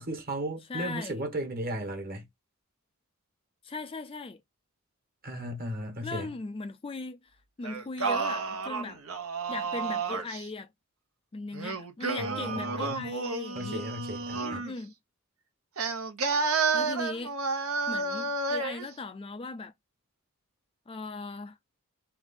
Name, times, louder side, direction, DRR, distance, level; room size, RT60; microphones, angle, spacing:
voice 1, 0.0-2.2 5.2-6.3 12.2-13.0 13.5-14.7, right 1 dB, 45° right, 1.4 m, -35 dB
voice 2, 0.7-1.3 3.6-4.4 6.0-9.0 9.5-10.7 11.3-13.9 14.4-14.9 16.4-17.4 17.9-19.7 20.9-21.6, left 3 dB, 25° left, 0.4 m, -39 dB
Singing, 7.6-10.5 11.5-14.7 15.8-18.9, right 4 dB, 70° right, 1.0 m, -31 dB
3.5 x 3.4 x 4.0 m
head